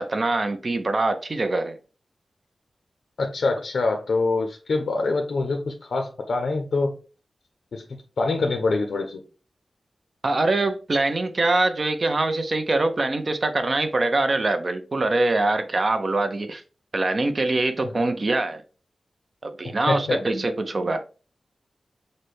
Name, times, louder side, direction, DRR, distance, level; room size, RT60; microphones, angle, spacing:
voice 1, 0.0-1.8 10.2-16.6 16.9-18.6 19.4-21.0, right 2 dB, 45° right, 0.6 m, -23 dB
voice 2, 3.2-6.9 7.7-7.8 8.2-9.2 19.9-20.2, left 3 dB, 80° left, 0.6 m, -25 dB
6.5 x 2.2 x 3.2 m
wide cardioid pair, 125°, 0 cm